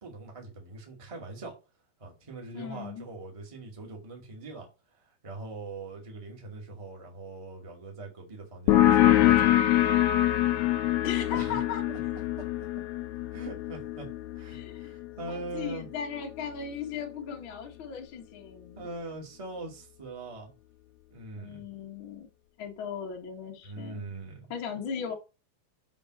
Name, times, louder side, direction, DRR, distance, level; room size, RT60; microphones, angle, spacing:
voice 1, 0.0-1.5 2.0-4.7 5.0-9.7 11.3-11.6 11.9-12.5 13.3-14.1 14.3-15.9 18.7-20.5 21.1-21.6 23.6-24.5, right 3 dB, 15° right, 1.1 m, -42 dB
voice 2, 2.5-3.1 11.0-11.8 14.5-15.0 15.3-18.9 21.4-22.3 22.6-24.1 24.5-25.1, left 7 dB, 65° left, 1.2 m, -37 dB
sound 1, 8.7-15.9, left 13 dB, 85° left, 1.7 m, -25 dB
7.0 x 4.1 x 6.3 m
omnidirectional pair, 4.7 m